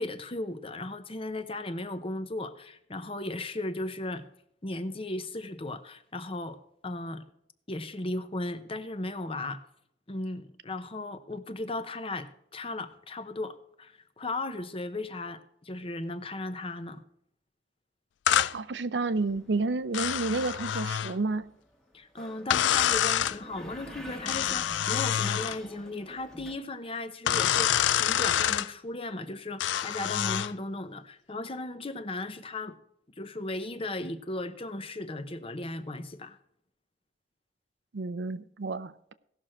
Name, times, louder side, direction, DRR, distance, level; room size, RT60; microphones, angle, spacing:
voice 1, 0.0-4.3 4.6-6.6 6.8-7.2 7.7-9.6 10.1-17.0 21.9-32.8 33.2-36.4, left 2 dB, 30° left, 0.8 m, -36 dB
sound 1, 18.3-18.5 19.9-21.2 22.5-23.4 24.3-25.6 27.3-28.7 29.6-30.5, left 10 dB, 85° left, 0.4 m, -26 dB
voice 2, 18.5-21.5 37.9-39.1, right 3 dB, 70° right, 0.6 m, -30 dB
sound 2, 19.2-26.6, equal, 5° left, 1.2 m, -48 dB
17.0 x 6.4 x 4.4 m
head